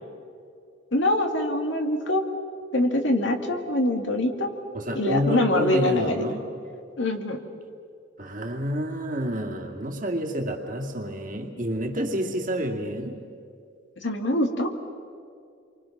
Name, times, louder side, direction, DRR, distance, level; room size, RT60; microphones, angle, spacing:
voice 1, 0.9-2.2 2.7-4.5 4.9-6.2 7.0-7.4 14.0-14.9, left 1 dB, 65° left, 4 dB, 2.2 m, -24 dB
voice 2, 4.7-6.4 8.2-13.2, equal, 40° right, 1 dB, 2.4 m, -29 dB
29.0 x 24.0 x 6.0 m, 2.4 s
head